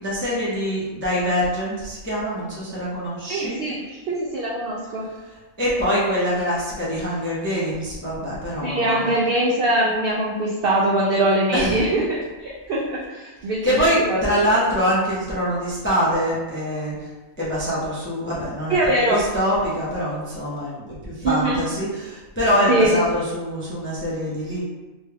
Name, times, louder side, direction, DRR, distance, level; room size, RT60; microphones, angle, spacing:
voice 1, 0.0-3.6 5.6-9.1 11.5-11.8 13.6-17.1 17.4-24.6, equal, 20° left, -7 dB, 0.3 m, -24 dB
voice 2, 3.3-5.1 8.6-14.4 18.7-19.2 21.2-21.6 22.7-22.9, right 1 dB, 75° right, -4 dB, 0.5 m, -22 dB
3.0 x 2.2 x 3.2 m, 1.1 s
omnidirectional pair, 1.5 m